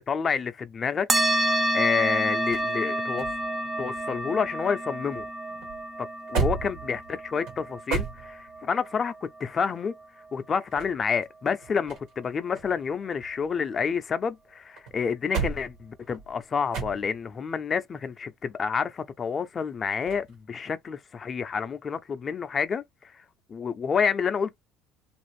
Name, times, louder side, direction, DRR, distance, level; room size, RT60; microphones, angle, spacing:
voice 1, 0.1-3.3 3.8-5.3 6.0-10.0 10.3-24.6, left 6 dB, 35° left, 0.5 m, -29 dB
sound 1, 1.1-10.0, right 1 dB, 20° right, 0.5 m, -29 dB
sound 2, 1.7-4.8 5.1-8.7 10.5-12.3 12.6-14.3 14.8-17.4 20.0-20.3, right 6 dB, 80° right, 1.3 m, -35 dB
2.5 x 2.5 x 3.2 m
supercardioid pair, 95°, 0 cm